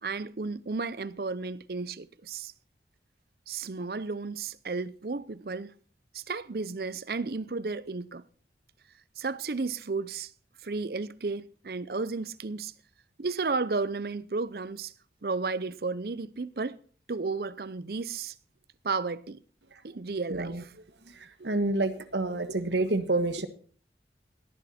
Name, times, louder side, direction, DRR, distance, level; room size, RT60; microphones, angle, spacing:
voice 1, 0.0-2.5 3.5-5.7 6.1-8.2 9.2-10.3 10.6-12.7 13.2-14.9 15.2-16.8 17.1-18.3 18.8-19.4 19.8-20.5 21.4-21.5, right 4 dB, 55° right, 0.6 m, -33 dB
voice 2, 20.3-20.6 21.0-23.5, right 2 dB, 80° right, 1.5 m, -29 dB
17.5 x 10.5 x 4.3 m
head